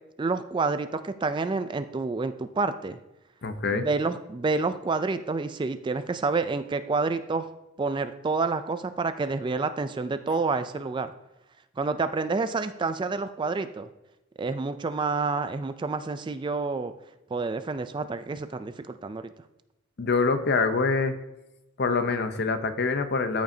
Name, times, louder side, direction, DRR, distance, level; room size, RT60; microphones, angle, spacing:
voice 1, 0.2-3.0 3.7-7.5 7.8-11.1 11.8-13.9 14.4-16.9 17.3-19.2, right 4 dB, 20° right, 11 dB, 0.3 m, -28 dB
voice 2, 3.4-3.9 20.0-21.2 21.8-23.4, left 4 dB, 50° left, 9 dB, 0.7 m, -25 dB
13.5 x 5.1 x 2.7 m, 0.95 s
head